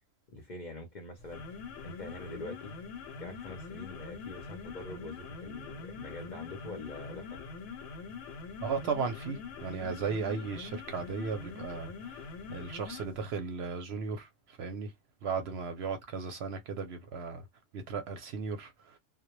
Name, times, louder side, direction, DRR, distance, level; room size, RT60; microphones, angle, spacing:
voice 1, 0.3-1.4 1.8-2.7 3.2-7.4 15.5-15.6, left 2 dB, 50° left, 0.6 m, -44 dB
sound 1, 1.2-13.2, left 5 dB, 75° left, 0.9 m, -44 dB
voice 2, 8.6-12.2 12.5-14.9 15.2-17.4 17.7-19.0, right 5 dB, 65° right, 0.7 m, -36 dB
2.1 x 2.1 x 2.9 m
omnidirectional pair, 1.3 m